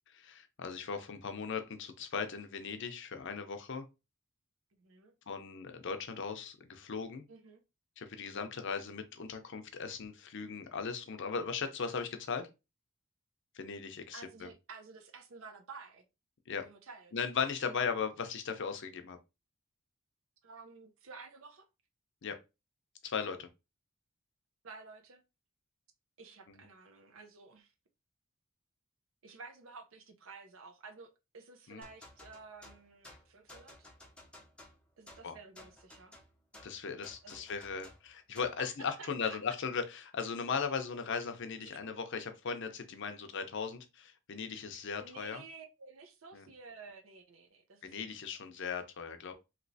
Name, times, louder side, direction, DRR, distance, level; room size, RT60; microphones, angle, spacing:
voice 1, 0.1-3.9 5.3-7.3 8.0-12.5 13.5-14.5 16.5-16.7 17.1-19.2 22.2-22.4 23.0-23.5 26.5-26.6 31.7-31.8 35.2-35.4 36.6-45.4 46.3-46.5 47.8-49.3, left 5 dB, 60° left, 0.5 m, -38 dB
voice 2, 4.7-5.1 7.3-7.6 14.1-16.1 16.6-17.1 20.4-21.7 24.6-25.2 26.2-27.7 29.2-33.9 35.0-36.1 37.2-37.4 38.6-39.4 41.6-41.9 45.0-48.1, right 4 dB, 70° right, 0.6 m, -52 dB
sound 1, 31.8-38.7, left 1 dB, 5° left, 0.5 m, -56 dB
3.1 x 2.9 x 2.7 m
head